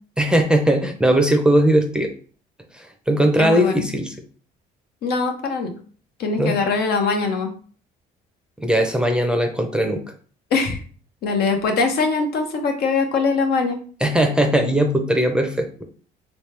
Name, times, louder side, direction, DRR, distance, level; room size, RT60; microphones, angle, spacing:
voice 1, 0.2-2.1 2.7-4.1 6.4-6.6 8.6-10.0 14.0-15.8, right 1 dB, 5° right, 4 dB, 0.6 m, -19 dB
voice 2, 3.4-3.8 5.0-5.7 6.2-7.5 10.5-10.8 11.2-13.8, left 4 dB, 70° left, 4 dB, 0.9 m, -22 dB
3.2 x 3.1 x 3.3 m, 0.43 s
cardioid pair, 110°, 17 cm